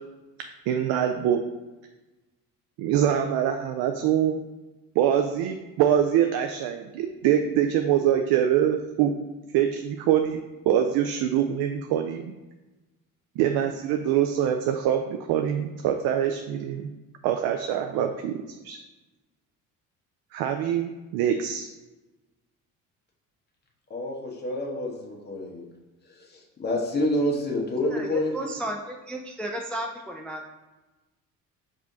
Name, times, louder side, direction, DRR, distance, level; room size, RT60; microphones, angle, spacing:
voice 1, 0.7-1.4 2.8-4.4 5.0-9.1 9.5-10.4 10.7-12.3 13.4-16.9 17.2-18.4 18.6-18.8 20.3-21.7, right 9 dB, 65° right, 6 dB, 0.5 m, -24 dB
voice 2, 23.9-25.7 26.2-28.4, left 1 dB, 25° left, -2 dB, 1.2 m, -28 dB
voice 3, 27.9-30.5, right 1 dB, 5° left, 1 dB, 0.4 m, -34 dB
4.9 x 2.8 x 3.6 m, 1.1 s
hypercardioid pair, 65°, 40 cm